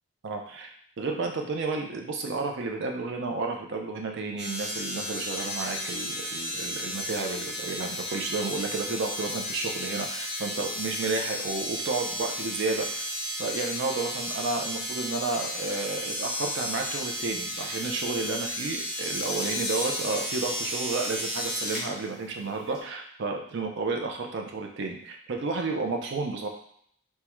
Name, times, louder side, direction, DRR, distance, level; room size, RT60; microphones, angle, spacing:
voice 1, 0.2-0.7 1.0-13.1 13.4-26.5, right 3 dB, 50° right, 2 dB, 0.4 m, -32 dB
sound 1, 4.4-21.8 22.7-22.8, equal, 5° right, 0.7 m, -33 dB
3.5 x 2.1 x 3.0 m, 0.65 s
head